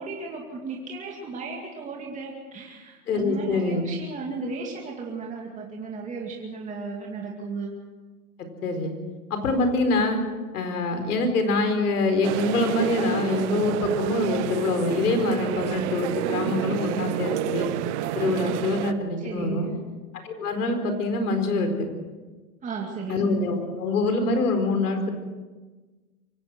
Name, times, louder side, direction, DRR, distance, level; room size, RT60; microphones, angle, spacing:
voice 1, 0.0-7.7 19.2-19.8 22.6-23.2, right 4 dB, 15° right, -1 dB, 2.4 m, -35 dB
voice 2, 3.1-3.8 8.6-8.9 9.3-10.2 10.5-17.7 18.1-19.7 20.2-21.9 23.1-25.1, left 2 dB, 85° left, 7 dB, 4.7 m, -25 dB
sound 1, 12.2-18.9, right 14 dB, 50° right, 1.0 m, -29 dB
24.0 x 17.5 x 6.2 m, 1.3 s
hypercardioid pair, 140°, 44 cm